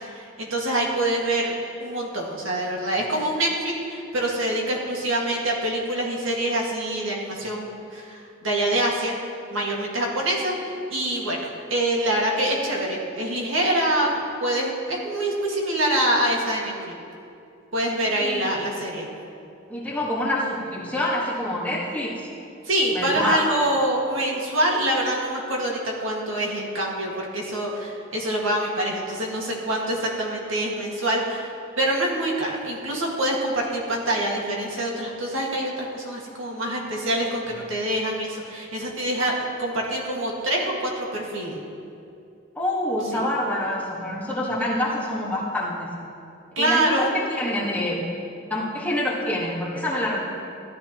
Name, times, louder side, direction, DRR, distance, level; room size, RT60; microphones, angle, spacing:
voice 1, 0.0-1.5 1.8-9.2 9.5-10.5 10.9-17.0 17.7-19.1 22.6-41.6 43.1-43.2 46.6-47.1, right 1 dB, 70° right, -1 dB, 1.8 m, -25 dB
voice 2, 19.7-22.3 22.9-23.4 42.5-46.0 46.6-48.1 48.4-50.2, left 1 dB, 10° left, -5 dB, 1.5 m, -26 dB
15.0 x 11.0 x 3.0 m, 2.6 s
head